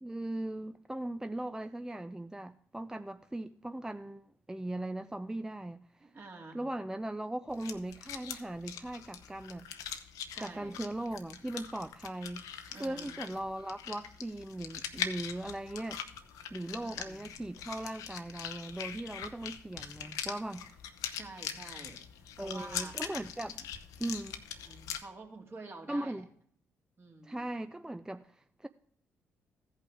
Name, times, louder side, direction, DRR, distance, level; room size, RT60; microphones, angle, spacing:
voice 1, 0.0-6.1 6.5-9.7 10.4-12.5 12.8-16.0 16.5-20.7 22.4-23.6 24.0-24.4 25.9-26.3 27.2-28.7, right 1 dB, 10° right, 0.4 m, -39 dB
voice 2, 6.0-6.6 10.3-10.7 12.7-13.2 16.7-17.2 21.1-23.0 24.7-26.2 27.0-27.5, right 3 dB, 40° right, 2.3 m, -49 dB
sound 1, 7.5-25.0, left 9 dB, 75° left, 0.8 m, -42 dB
14.5 x 5.6 x 4.8 m
hypercardioid pair, 50°, 6 cm